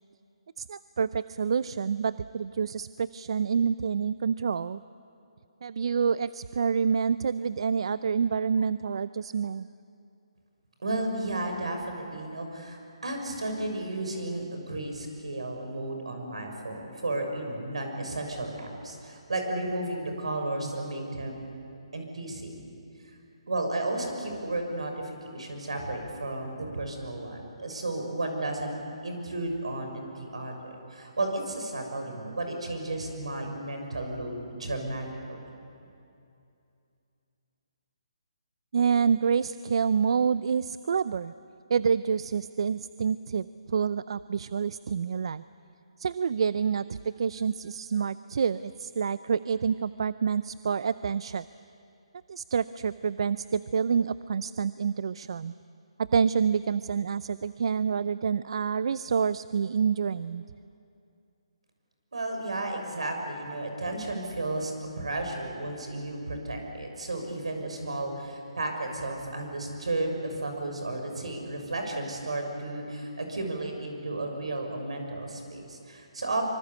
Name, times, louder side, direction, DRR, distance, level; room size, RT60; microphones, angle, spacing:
voice 1, 0.6-4.8 5.6-9.7 38.7-41.3 41.7-45.4 46.0-51.4 52.3-55.5 56.0-60.4, right 6 dB, 60° right, 16 dB, 0.5 m, -27 dB
voice 2, 10.8-21.5 21.9-22.7 23.5-28.7 29.0-35.4 62.1-76.4, right 2 dB, 80° right, 4 dB, 6.5 m, -33 dB
25.0 x 25.0 x 8.4 m, 2.6 s
hypercardioid pair, 150°, 3 cm